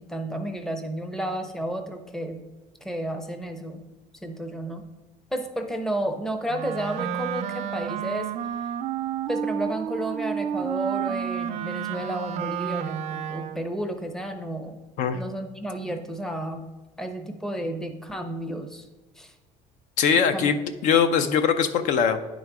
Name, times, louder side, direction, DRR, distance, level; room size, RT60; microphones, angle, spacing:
voice 1, 0.0-2.4 2.8-3.8 4.2-4.8 5.3-8.3 9.3-14.8 15.1-16.7 17.0-18.9 19.2-19.3 20.1-20.5, right 1 dB, 5° left, 6 dB, 0.6 m, -32 dB
Wind instrument woodwind instrument, 6.5-13.7, right 9 dB, 55° right, 0.4 m, -31 dB
voice 2, 20.0-20.6 20.8-22.2, left 7 dB, 65° left, 10 dB, 0.5 m, -21 dB
9.3 x 3.9 x 4.7 m, 1.1 s
cardioid pair, 150°, 14 cm